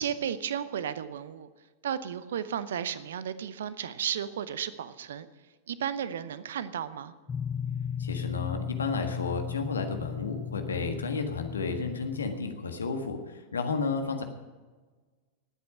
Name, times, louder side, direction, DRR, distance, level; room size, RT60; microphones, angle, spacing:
voice 1, 0.0-1.5 1.8-5.3 5.7-7.1, right 9 dB, 60° right, 15 dB, 0.8 m, -33 dB
sound 1, 7.3-12.4, left 8 dB, 20° left, 0.5 m, -36 dB
voice 2, 8.0-14.2, left 4 dB, 70° left, 6 dB, 1.6 m, -32 dB
18.5 x 8.5 x 6.0 m, 1.4 s
figure-of-eight pair, 90°, 0 cm